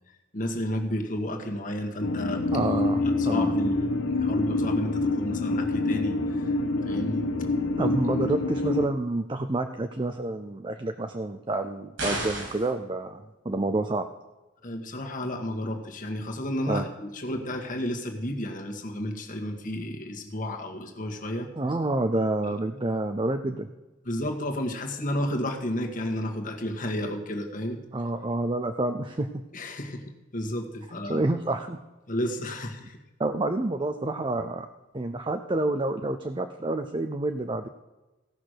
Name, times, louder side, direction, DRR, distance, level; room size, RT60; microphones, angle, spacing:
voice 1, 0.3-2.4 3.0-6.5 6.9-7.3 7.8-7.9 14.6-21.5 22.4-22.6 24.1-27.8 29.5-30.0 30.3-31.2 32.1-33.0, left 1 dB, 40° left, 3 dB, 1.7 m, -32 dB
sound 1, 2.0-8.9, left 2 dB, 85° left, 1.1 m, -26 dB
voice 2, 2.5-3.6 7.8-14.1 16.7-16.8 21.6-23.7 27.9-29.3 31.0-31.8 33.2-34.7 34.9-37.7, right 2 dB, 25° right, 7 dB, 0.6 m, -28 dB
sound 2, 12.0-12.7, right 2 dB, 75° right, 4.3 m, -31 dB
16.0 x 6.1 x 6.5 m, 1.1 s
head